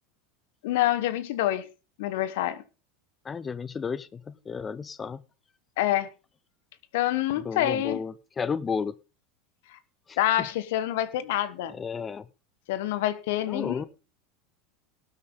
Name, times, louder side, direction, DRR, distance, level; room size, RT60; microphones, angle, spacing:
voice 1, 0.6-1.7 2.0-2.6 5.8-6.1 6.9-8.0 9.7-9.8 10.2-11.7 12.7-13.9, left 13 dB, 65° left, 1.3 m, -27 dB
voice 2, 3.2-5.2 7.4-8.9 10.1-10.5 11.7-12.2 13.5-13.8, left 6 dB, 25° left, 0.5 m, -33 dB
18.5 x 8.7 x 3.9 m
hypercardioid pair, 90°, 0 cm